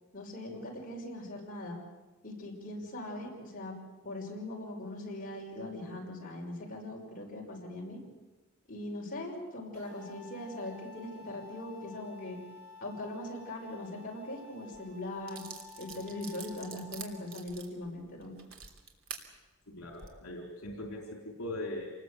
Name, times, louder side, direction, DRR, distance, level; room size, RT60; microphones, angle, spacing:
voice 1, 0.1-1.8 2.2-3.7 4.0-8.0 8.7-12.4 12.8-15.4 15.8-18.3, left 1 dB, 40° left, -1 dB, 5.7 m, -40 dB
sound 1, 9.7-17.4, left 4 dB, 50° right, 7.9 m, -52 dB
sound 2, 14.7-14.8 15.3-19.2 19.8-20.1, right 7 dB, 65° right, 3.1 m, -46 dB
voice 2, 19.7-21.9, left 1 dB, 70° left, 1 dB, 4.1 m, -40 dB
27.0 x 20.0 x 8.3 m, 1.2 s
head